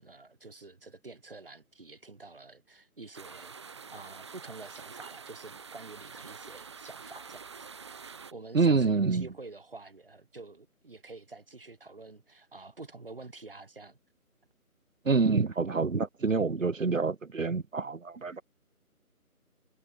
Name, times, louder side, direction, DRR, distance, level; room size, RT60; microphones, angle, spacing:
voice 1, 0.0-3.5 3.9-14.0 18.3-18.4, right 3 dB, 40° right, 6.1 m, -48 dB
sound 1, 3.1-8.3, right 5 dB, 20° right, 8.0 m, -46 dB
voice 2, 8.5-9.3 15.1-18.4, right 4 dB, 60° right, 1.1 m, -27 dB
figure-of-eight pair, 175°, 44 cm